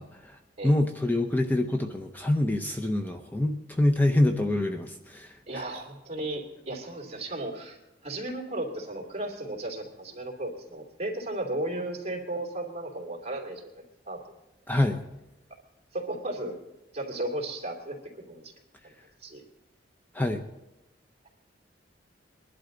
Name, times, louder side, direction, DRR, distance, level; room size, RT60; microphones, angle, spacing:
voice 1, 0.0-5.6 14.7-15.0 20.1-20.4, left 1 dB, 10° left, 4 dB, 0.7 m, -26 dB
voice 2, 5.5-13.7 14.1-14.2 15.9-16.6 16.9-18.5 18.8-18.9 19.2-19.4, right 1 dB, 35° right, 1 dB, 2.9 m, -35 dB
22.0 x 11.5 x 3.9 m, 0.96 s
head